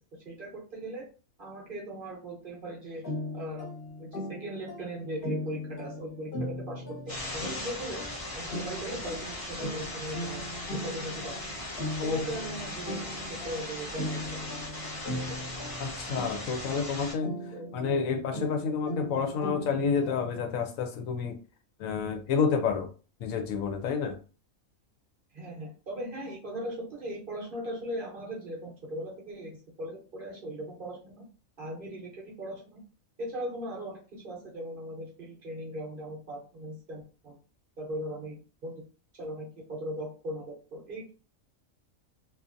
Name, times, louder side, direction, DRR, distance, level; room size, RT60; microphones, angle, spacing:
voice 1, 0.2-1.0 1.4-3.0 3.3-3.7 4.0-8.0 8.3-10.4 10.8-11.3 12.0-14.2 15.3-15.4 17.5-17.7 25.3-31.3 31.6-32.8 33.2-37.4 37.8-38.8 39.1-41.1, right 1 dB, 50° right, -2 dB, 0.8 m, -39 dB
sound 1, 3.0-20.5, left 1 dB, 45° left, 1.0 m, -39 dB
sound 2, 7.1-17.1, left 1 dB, 20° left, 0.6 m, -39 dB
voice 2, 15.8-17.3 17.7-21.4 21.8-22.9 23.2-24.2, left 5 dB, 75° left, 5 dB, 1.0 m, -29 dB
2.6 x 2.4 x 2.5 m, 0.35 s
omnidirectional pair, 1.4 m